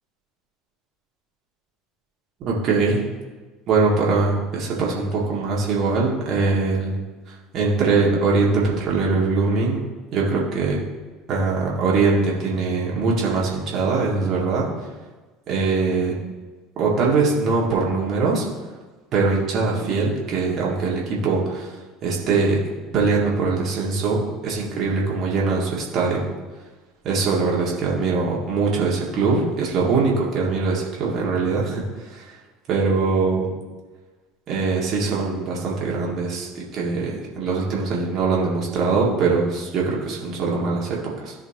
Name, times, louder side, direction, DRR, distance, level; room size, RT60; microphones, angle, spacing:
voice 1, 2.4-3.0 3.7-6.9 7.3-9.8 10.1-10.8 11.3-14.7 15.5-16.1 16.8-18.4 19.1-22.6 22.9-26.2 27.0-32.3 32.7-33.5 34.5-41.3, right 4 dB, 50° right, -4 dB, 2.0 m, -22 dB
14.5 x 4.9 x 2.9 m, 1.3 s
figure-of-eight pair, 65°, 0 cm